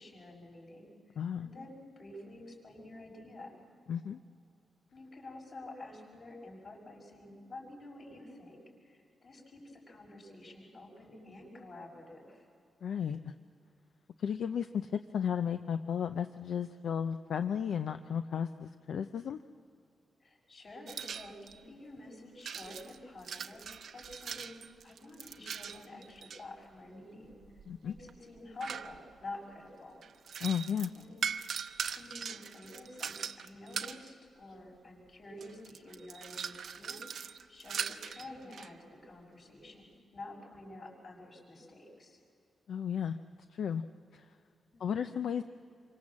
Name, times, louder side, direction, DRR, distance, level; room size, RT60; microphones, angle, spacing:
voice 1, 0.0-3.6 4.9-12.5 20.2-24.5 24.8-27.4 27.8-30.0 30.9-31.3 31.9-42.2 44.7-45.1, left 2 dB, 45° left, 0 dB, 6.1 m, -49 dB
voice 2, 1.2-1.5 3.9-4.2 12.8-13.3 14.2-19.4 27.7-27.9 30.4-30.9 42.7-43.2 43.5-43.8 44.1-44.2 44.8-45.4, left 8 dB, 70° left, 9 dB, 0.6 m, -34 dB
sound 1, 20.9-21.6 22.4-26.4 27.3-29.3 30.0-34.1 35.0-35.1 35.4-38.7, right 7 dB, 60° right, 0.8 m, -41 dB
27.5 x 24.5 x 7.5 m, 2.5 s
wide cardioid pair, 170°, 0 cm